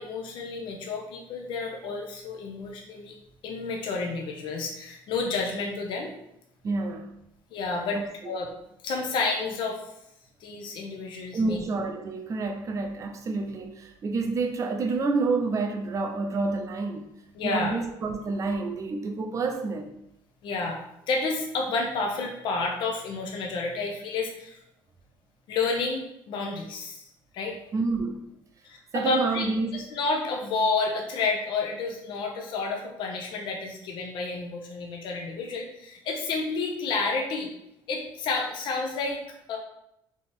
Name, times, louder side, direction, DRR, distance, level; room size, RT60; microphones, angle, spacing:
voice 1, 0.0-3.1 3.4-6.1 7.5-8.0 8.2-8.5 8.8-9.8 10.4-11.6 17.3-17.7 20.4-20.8 21.1-24.6 25.5-27.1 27.3-27.6 28.6-29.4 29.7-37.5 37.9-39.2 39.5-39.6, left 4 dB, 65° left, 1 dB, 0.8 m, -30 dB
voice 2, 6.6-7.1 7.9-8.0 11.3-17.1 17.4-20.0 27.7-28.3 28.9-29.8, right 3 dB, 35° right, 4 dB, 0.6 m, -28 dB
3.5 x 3.0 x 4.4 m, 0.81 s
cardioid pair, 125°, 9 cm